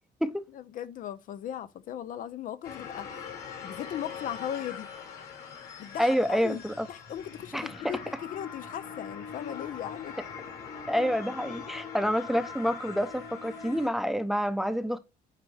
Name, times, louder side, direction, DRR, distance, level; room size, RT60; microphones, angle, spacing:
voice 1, 0.5-3.3 3.6-4.9 5.8-6.6 6.9-10.2, left 10 dB, 55° left, 0.4 m, -38 dB
sound 1, 2.6-13.9, left 6 dB, 75° left, 2.8 m, -42 dB
voice 2, 6.0-6.9 7.5-8.0 10.9-15.0, equal, ahead, 0.6 m, -28 dB
9.4 x 3.4 x 3.3 m
cardioid pair, 110°, 17 cm